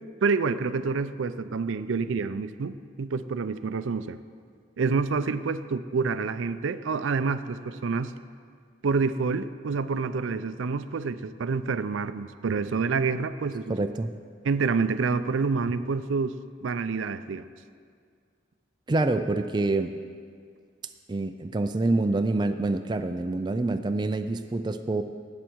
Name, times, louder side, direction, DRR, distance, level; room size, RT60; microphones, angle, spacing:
voice 1, 0.2-4.2 4.8-8.1 8.8-13.8 14.4-16.4 16.6-17.5, right 4 dB, 80° right, 13 dB, 0.4 m, -27 dB
voice 2, 13.7-14.1 18.9-19.9 21.1-25.0, right 2 dB, 20° right, 8 dB, 0.4 m, -26 dB
18.0 x 7.6 x 4.6 m, 2.1 s
head